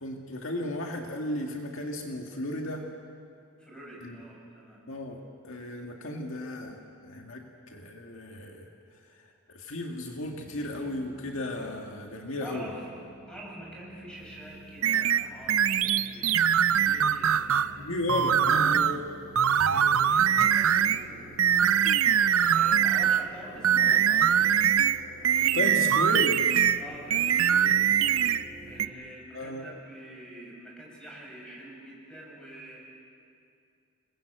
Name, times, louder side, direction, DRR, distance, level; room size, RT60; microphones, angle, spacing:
voice 1, 0.0-2.9 4.0-4.2 4.9-6.8 7.0-8.7 9.5-12.7 17.7-19.1 25.4-26.5 29.3-29.6, left 1 dB, 70° left, 2 dB, 2.0 m, -34 dB
voice 2, 3.6-4.8 12.4-17.7 19.6-21.3 22.5-24.6 26.8-27.9 28.7-32.8, right 1 dB, 5° left, -3 dB, 7.2 m, -46 dB
sound 1, 10.1-28.9, right 1 dB, 50° left, 3.8 m, -49 dB
sound 2, 14.8-17.7 18.1-19.0 19.3-21.0 21.4-23.3 23.6-26.8 27.1-28.4 28.8-28.9, right 9 dB, 70° right, 0.6 m, -23 dB
28.0 x 21.5 x 8.0 m, 2.4 s
head